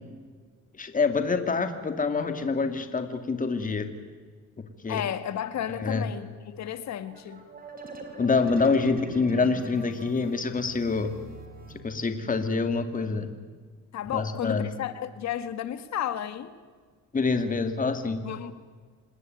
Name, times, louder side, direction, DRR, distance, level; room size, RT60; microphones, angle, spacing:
voice 1, 0.8-3.9 4.8-5.0 5.8-6.1 8.2-11.1 11.8-13.3 14.1-14.7 17.1-18.2, left 4 dB, 30° left, 2.5 m, -26 dB
voice 2, 4.9-7.4 13.9-16.5 18.2-18.5, left 10 dB, 65° left, 1.9 m, -33 dB
sound 1, 7.0-12.4, right 2 dB, 30° right, 4.5 m, -43 dB
27.0 x 19.5 x 9.4 m
cardioid pair, 95°, 29 cm